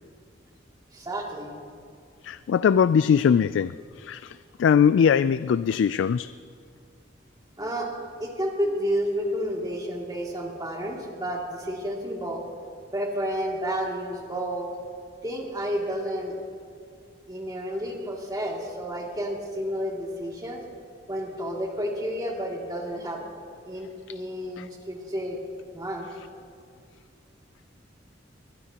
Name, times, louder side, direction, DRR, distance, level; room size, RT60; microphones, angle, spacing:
voice 1, 0.9-1.5 7.6-7.9 8.2-12.4 12.9-14.7 15.2-16.3 17.3-20.6 21.1-23.2 23.6-25.4 25.7-26.1, equal, 20° right, -2 dB, 2.6 m, -31 dB
voice 2, 2.2-6.3 24.1-24.2 24.6-24.7, left 7 dB, 85° left, 15 dB, 0.3 m, -21 dB
21.5 x 21.0 x 2.9 m, 2.2 s
head